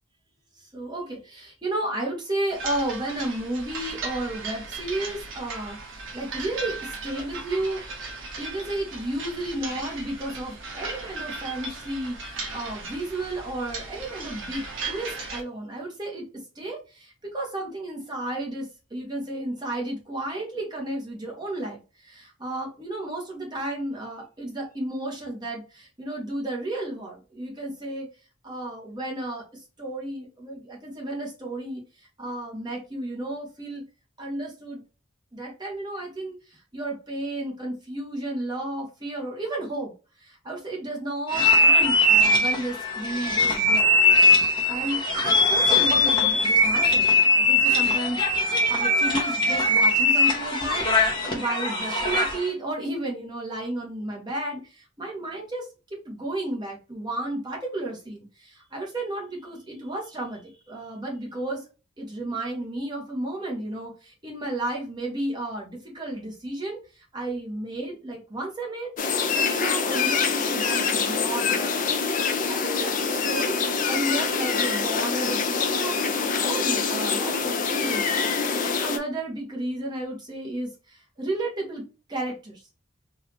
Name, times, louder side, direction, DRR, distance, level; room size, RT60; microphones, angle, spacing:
voice 1, 0.6-8.0 8.4-16.2 16.5-28.1 28.4-29.4 29.8-31.8 32.2-33.8 34.2-34.8 35.3-39.9 40.2-43.9 44.2-44.4 44.7-61.6 62.0-68.9 69.3-71.9 72.5-73.6 73.9-81.8 82.1-82.6, right 1 dB, 20° right, -2 dB, 1.3 m, -33 dB
sound 1, 2.5-15.4, right 3 dB, 70° right, 1.2 m, -37 dB
sound 2, 41.3-52.5, left 1 dB, 25° left, 1.0 m, -21 dB
sound 3, 69.0-79.0, left 5 dB, 40° left, 0.5 m, -25 dB
4.0 x 2.8 x 3.0 m, 0.32 s
head